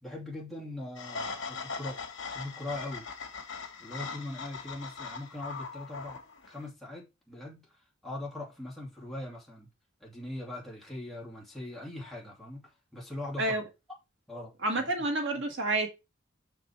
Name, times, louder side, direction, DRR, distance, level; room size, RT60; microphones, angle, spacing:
voice 1, 0.0-2.0 2.3-3.0 3.8-7.6 8.0-9.7 10.0-13.6 14.3-14.5, left 1 dB, ahead, 2.6 m, -41 dB
sound 1, 1.0-6.7, left 5 dB, 65° left, 2.0 m, -40 dB
voice 2, 14.6-15.9, right 2 dB, 65° right, 1.7 m, -29 dB
6.1 x 5.3 x 4.5 m
head